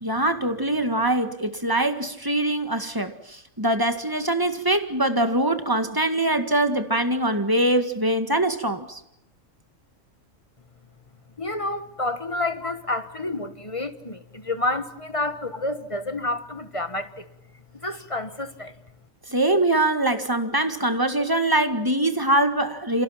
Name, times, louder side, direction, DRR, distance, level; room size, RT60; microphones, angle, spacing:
voice 1, 0.0-9.0 19.3-23.0, right 1 dB, 15° right, 1.9 m, -23 dB
voice 2, 11.4-17.3 17.8-18.7, left 2 dB, 25° left, 1.4 m, -29 dB
29.0 x 26.5 x 5.9 m
omnidirectional pair, 1.4 m